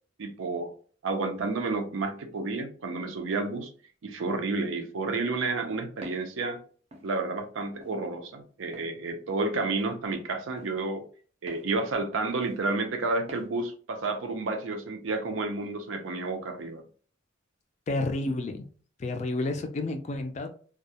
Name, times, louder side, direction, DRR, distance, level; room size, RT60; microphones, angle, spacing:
voice 1, 0.2-0.7 1.0-3.7 4.0-6.6 7.0-11.0 11.4-16.8, right 3 dB, 80° right, 6 dB, 0.5 m, -30 dB
Walk footsteps, 6.0-6.3 6.9-7.1 7.8-8.0 8.7-8.9 9.7-9.9 10.6-10.7 11.5-11.7 12.4-12.6 13.3-13.5, equal, 30° right, 0.5 m, -45 dB
voice 2, 17.9-18.7 19.0-20.5, left 2 dB, 35° left, 7 dB, 0.3 m, -30 dB
2.2 x 2.0 x 2.7 m, 0.43 s
head